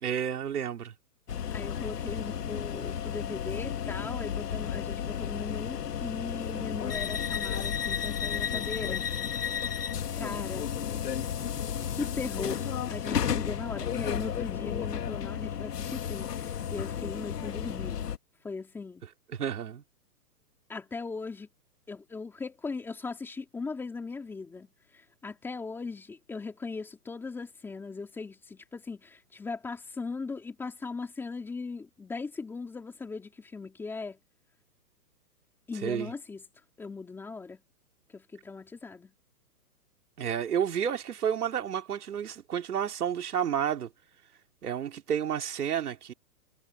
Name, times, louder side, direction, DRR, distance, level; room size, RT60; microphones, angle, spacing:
voice 1, 0.0-0.9 19.3-19.8 35.8-36.1 40.2-43.9 44.6-46.1, right 8 dB, 70° right, 2.9 m, -30 dB
sound 1, 1.3-18.2, left 8 dB, 80° left, 2.4 m, -33 dB
voice 2, 1.5-9.1 10.1-10.7 11.9-18.0 18.4-19.0 20.7-21.5 21.9-24.7 24.9-34.2 35.7-36.4 36.8-37.6 38.1-39.1, left 4 dB, 5° left, 3.3 m, -39 dB
hypercardioid pair, 175°, 47 cm